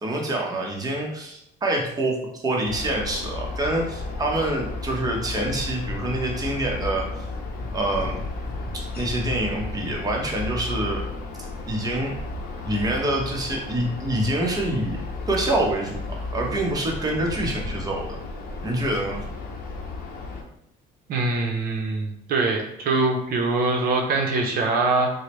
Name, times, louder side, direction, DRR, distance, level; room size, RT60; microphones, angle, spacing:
voice 1, 0.0-7.1 7.7-8.2 8.7-11.0 11.7-12.2 12.6-15.0 15.3-18.2 18.6-19.2, right 1 dB, 20° right, 0 dB, 0.8 m, -26 dB
sound 1, 2.6-20.4, left 2 dB, 65° left, 0.8 m, -33 dB
voice 2, 21.1-25.1, right 3 dB, 60° right, 1 dB, 0.6 m, -23 dB
4.8 x 2.0 x 3.0 m, 0.78 s
cardioid pair, 110°, 17 cm